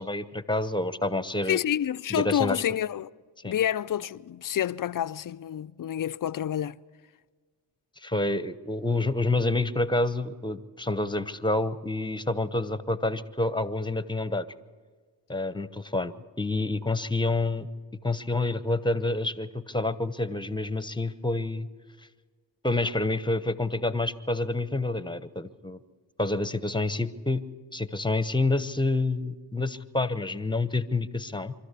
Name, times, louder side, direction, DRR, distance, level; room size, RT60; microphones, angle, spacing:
voice 1, 0.0-1.6 2.1-2.6 3.4-3.5 8.0-14.5 15.3-17.7 18.0-21.7 22.6-25.8 26.2-27.4 27.7-31.5, left 2 dB, 10° left, 0.9 m, -28 dB
voice 2, 1.5-3.1 3.4-6.8, left 10 dB, 40° left, 0.5 m, -28 dB
25.0 x 13.0 x 8.3 m
supercardioid pair, 50°, 50 cm